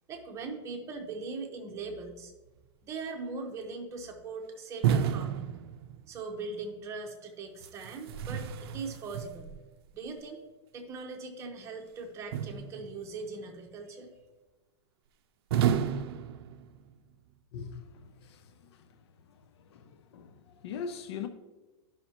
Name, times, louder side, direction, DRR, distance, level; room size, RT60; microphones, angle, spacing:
voice 1, 0.1-2.3 2.8-5.5 6.1-9.5 9.9-10.4 10.7-14.1, right 4 dB, 20° right, 1.0 m, -40 dB
sound 1, 4.8-6.3 7.6-9.7 12.3-13.2 15.5-17.0, right 9 dB, 60° right, 0.5 m, -31 dB
voice 2, 17.5-18.9 19.3-19.4 19.7-21.3, left 6 dB, 65° left, 0.6 m, -42 dB
11.5 x 5.6 x 2.9 m
supercardioid pair, 160°, 14 cm